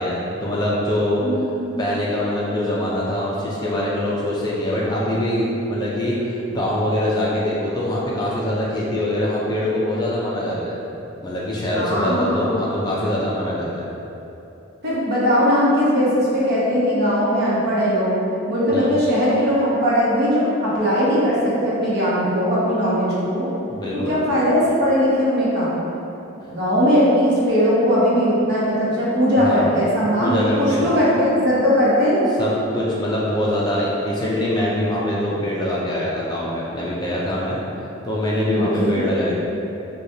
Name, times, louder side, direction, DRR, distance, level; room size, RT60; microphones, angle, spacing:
voice 1, 0.0-1.2 1.8-10.7 11.2-13.9 18.7-18.9 23.7-24.2 29.4-29.6 30.2-30.9 32.4-37.6 38.0-39.3, left 1 dB, 20° left, -6 dB, 0.4 m, -23 dB
voice 2, 1.2-1.8 11.7-12.8 14.8-18.2 18.5-23.5 23.9-25.7 26.5-32.3 38.6-39.0, equal, 55° right, -8 dB, 1.0 m, -19 dB
4.8 x 2.3 x 2.7 m, 2.9 s
head